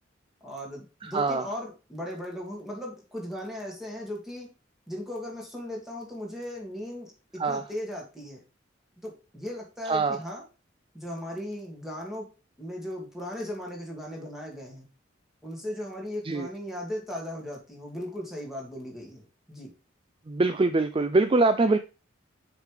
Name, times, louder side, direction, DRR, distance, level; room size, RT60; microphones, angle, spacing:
voice 1, 0.4-4.5 4.9-8.4 9.0-10.4 10.9-12.3 12.6-14.9 15.4-19.7, left 1 dB, ahead, 2.6 m, -37 dB
voice 2, 20.3-21.8, right 3 dB, 25° right, 0.4 m, -23 dB
6.4 x 5.1 x 4.9 m
head